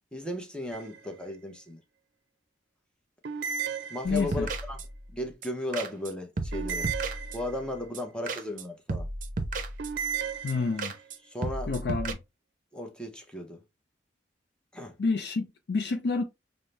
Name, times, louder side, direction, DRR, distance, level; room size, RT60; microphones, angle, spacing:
voice 1, 0.1-1.8 3.9-4.8 5.1-6.9 7.3-9.1 11.2-11.9 12.7-13.6 14.7-14.9, left 1 dB, 5° left, 0.7 m, -36 dB
sound 1, 0.7-1.3 3.2-4.5 6.5-7.9 9.8-11.1, right 7 dB, 90° right, 0.5 m, -35 dB
voice 2, 4.0-4.5 10.4-10.9 11.7-12.2 15.0-16.2, left 4 dB, 70° left, 0.4 m, -28 dB
sound 2, 4.0-5.1 5.4-5.5 5.7-6.1 6.4-7.6 7.9-8.0 8.3-8.6 8.9-10.1 10.5-10.6 10.8-11.2 11.4-12.1, right 2 dB, 50° right, 0.6 m, -34 dB
5.4 x 2.0 x 3.2 m
head